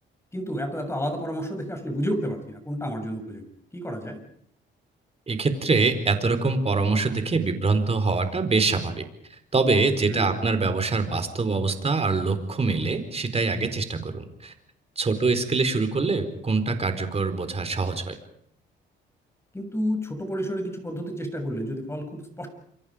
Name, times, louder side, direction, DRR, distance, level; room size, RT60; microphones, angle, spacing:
voice 1, 0.3-3.4 3.7-4.2 10.1-10.3 19.5-22.5, equal, 15° left, 6 dB, 7.1 m, -30 dB
voice 2, 5.3-9.0 9.5-14.5 15.0-18.2, right 3 dB, 30° right, 9 dB, 4.3 m, -24 dB
28.5 x 24.5 x 5.2 m, 0.67 s
cardioid pair, 90°, 20 cm